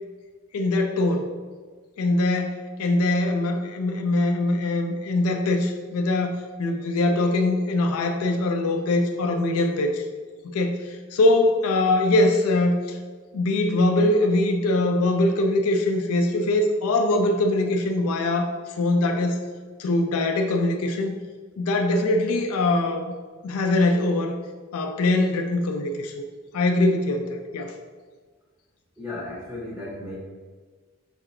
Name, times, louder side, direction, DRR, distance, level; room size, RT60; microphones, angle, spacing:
voice 1, 0.5-1.3 2.0-10.0 10.4-13.0 13.3-19.4 19.8-21.2 21.6-23.1 23.4-24.4 24.7-26.2 26.5-27.7, left 2 dB, 80° left, 4 dB, 0.4 m, -22 dB
voice 2, 29.0-30.2, left 2 dB, 15° right, -6 dB, 0.7 m, -35 dB
5.2 x 2.9 x 2.5 m, 1.5 s
head